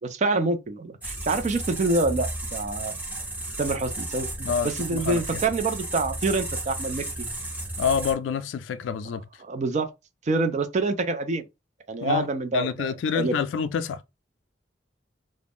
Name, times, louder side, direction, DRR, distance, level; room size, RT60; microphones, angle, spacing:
voice 1, 0.0-2.9 3.6-7.3 9.4-9.9 10.2-11.4 11.9-13.3, right 3 dB, 40° right, 0.4 m, -26 dB
sound 1, 1.0-8.1, right 2 dB, 10° right, 0.7 m, -33 dB
voice 2, 4.4-5.4 7.8-9.2 12.0-12.3 12.5-14.0, left 6 dB, 80° left, 0.3 m, -27 dB
2.4 x 2.0 x 3.4 m
head